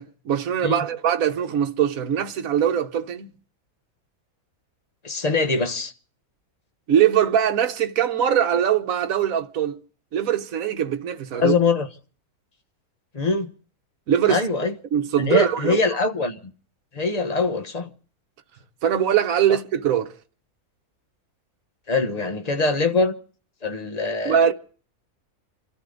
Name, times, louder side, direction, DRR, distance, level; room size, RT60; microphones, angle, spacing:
voice 1, 0.0-3.3 6.9-9.8 10.1-11.5 14.1-14.4 14.9-15.8 18.8-20.1 24.2-24.5, right 9 dB, 70° right, 1.3 m, -22 dB
voice 2, 5.0-5.9 11.3-11.9 13.1-13.5 14.3-14.7 15.2-16.4 16.9-17.9 19.5-19.6 21.9-23.2 23.6-24.4, left 3 dB, 30° left, 1.1 m, -23 dB
27.5 x 13.0 x 3.8 m
omnidirectional pair, 1.6 m